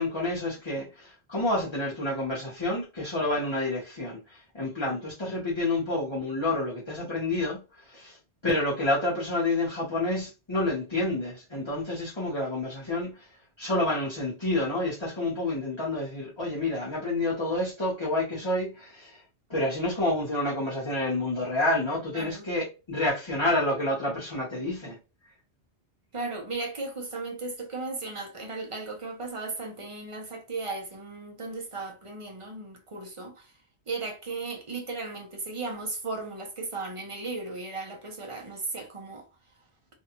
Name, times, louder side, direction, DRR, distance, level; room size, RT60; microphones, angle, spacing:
voice 1, 0.0-8.2 8.4-13.3 13.6-19.2 19.5-25.0, left 2 dB, 30° left, 0.9 m, -29 dB
voice 2, 22.1-22.5 26.1-33.5 33.9-39.3, right 3 dB, 35° right, 0.6 m, -36 dB
2.7 x 2.2 x 2.8 m
omnidirectional pair, 1.1 m